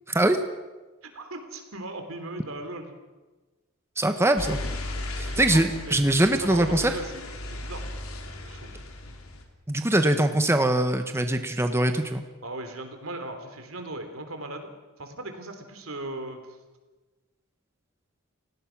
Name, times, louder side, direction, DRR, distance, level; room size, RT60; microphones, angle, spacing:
voice 1, 1.1-3.0 5.2-6.0 6.4-7.9 8.4-8.8 12.4-14.7 15.0-16.4, right 2 dB, 70° right, 6 dB, 3.6 m, -38 dB
voice 2, 4.0-4.6 5.2-6.9 9.7-12.2, right 1 dB, 10° right, 7 dB, 1.1 m, -22 dB
sound 1, 4.4-9.4, left 1 dB, 90° left, 3.4 m, -36 dB
30.0 x 17.5 x 6.1 m, 1.2 s
head